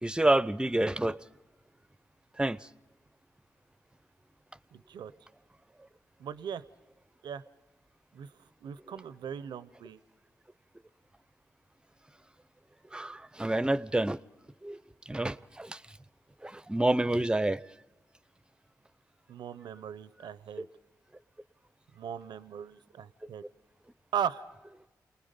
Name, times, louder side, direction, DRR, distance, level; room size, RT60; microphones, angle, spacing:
voice 1, 0.0-1.2 2.4-2.7 12.9-14.2 14.6-15.8 16.4-17.6, right 1 dB, 10° right, 0.6 m, -28 dB
voice 2, 4.7-5.1 6.2-6.6 7.2-7.4 8.1-8.3 8.6-10.0 19.3-20.7 22.0-23.4 24.1-24.4, right 8 dB, 85° right, 0.6 m, -38 dB
29.5 x 19.5 x 5.2 m
cardioid pair, 55°, 7 cm